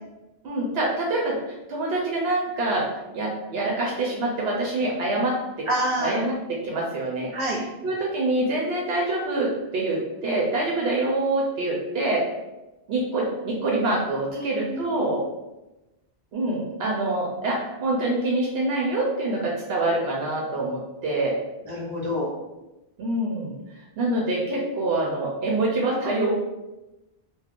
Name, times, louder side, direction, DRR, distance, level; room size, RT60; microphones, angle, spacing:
voice 1, 0.4-2.9 3.1-5.7 6.0-7.3 7.8-12.2 12.9-15.2 16.3-21.4 23.0-23.6 24.0-26.3, right 2 dB, 70° right, -3 dB, 0.8 m, -25 dB
voice 2, 5.7-6.2 7.3-7.6 14.3-15.1 21.7-22.3, equal, 30° right, -5 dB, 0.9 m, -28 dB
2.4 x 2.2 x 3.5 m, 1.0 s
omnidirectional pair, 1.1 m